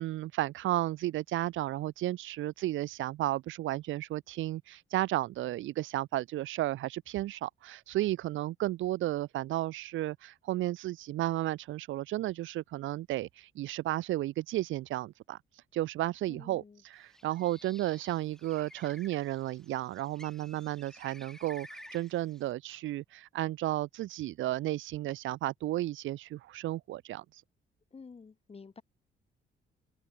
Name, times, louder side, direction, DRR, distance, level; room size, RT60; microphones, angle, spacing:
voice 1, 0.0-15.4 15.7-27.2, right 15 dB, 75° right, 0.6 m, -33 dB
voice 2, 16.3-16.8 27.9-28.8, left 5 dB, 30° left, 1.7 m, -50 dB
Bird, 17.0-22.5, equal, 5° left, 5.5 m, -54 dB
cardioid pair, 90°, 20 cm